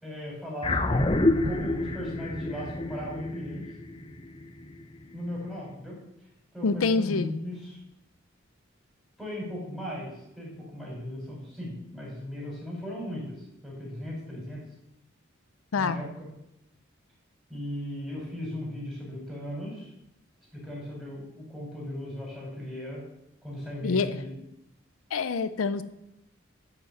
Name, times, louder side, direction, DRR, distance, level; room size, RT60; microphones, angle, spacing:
voice 1, 0.0-3.7 5.1-6.0 6.5-7.8 9.2-14.6 15.8-16.3 17.5-19.9 20.5-23.0 23.4-24.3, left 1 dB, ahead, -5 dB, 4.0 m, -37 dB
sound 1, 0.6-5.2, left 2 dB, 25° left, 0.6 m, -28 dB
voice 2, 6.6-7.4 15.7-16.0 23.8-24.2 25.1-25.8, left 4 dB, 90° left, 12 dB, 0.5 m, -26 dB
10.5 x 5.3 x 6.6 m, 0.83 s
head